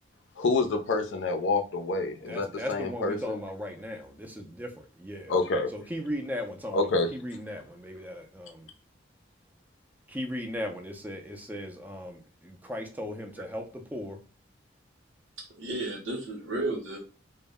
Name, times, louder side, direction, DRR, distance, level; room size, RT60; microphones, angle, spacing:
voice 1, 0.4-3.4 5.3-5.7 6.7-7.1, left 3 dB, 70° left, 0.5 m, -27 dB
voice 2, 2.3-5.3 5.7-8.7 10.1-14.2, left 1 dB, 10° right, 0.4 m, -37 dB
voice 3, 15.4-17.0, right 2 dB, 70° right, 0.8 m, -33 dB
2.1 x 2.0 x 3.4 m
head